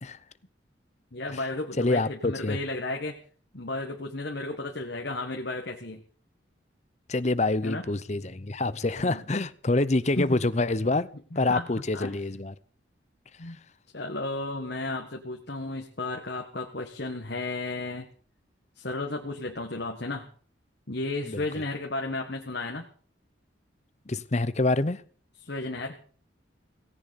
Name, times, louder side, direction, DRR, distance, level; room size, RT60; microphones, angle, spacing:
voice 1, 1.1-3.2 3.5-6.0 7.6-7.8 9.0-9.2 10.2-10.4 11.5-11.7 11.9-12.1 13.4-13.6 13.9-18.1 18.7-20.3 20.9-22.9 25.4-26.0, left 2 dB, 60° left, 1.6 m, -33 dB
voice 2, 1.8-2.6 7.1-11.1 11.3-12.5 21.2-21.6 24.1-25.0, left 2 dB, 35° left, 0.7 m, -26 dB
17.5 x 17.0 x 4.2 m
head